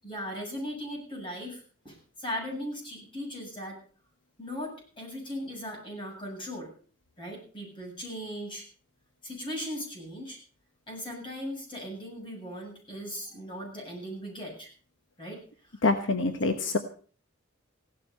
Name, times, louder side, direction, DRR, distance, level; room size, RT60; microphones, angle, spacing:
voice 1, 0.0-3.8 4.4-6.7 7.2-8.7 9.2-10.4 10.9-14.7 15.2-15.4 15.7-15.8, equal, 25° left, 0 dB, 7.8 m, -38 dB
voice 2, 15.8-16.8, left 3 dB, 65° left, 7 dB, 1.2 m, -25 dB
16.0 x 12.5 x 5.6 m, 0.42 s
head